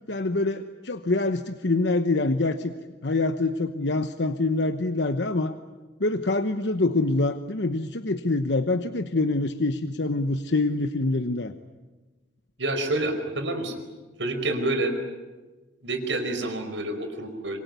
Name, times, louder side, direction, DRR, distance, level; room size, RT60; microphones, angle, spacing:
voice 1, 0.1-2.7 3.0-5.5 6.0-11.5, left 2 dB, 70° left, 8 dB, 1.1 m, -25 dB
voice 2, 12.6-13.7 14.2-14.9 15.8-17.6, right 2 dB, 80° right, 6 dB, 5.0 m, -28 dB
26.0 x 24.0 x 9.4 m, 1.2 s
head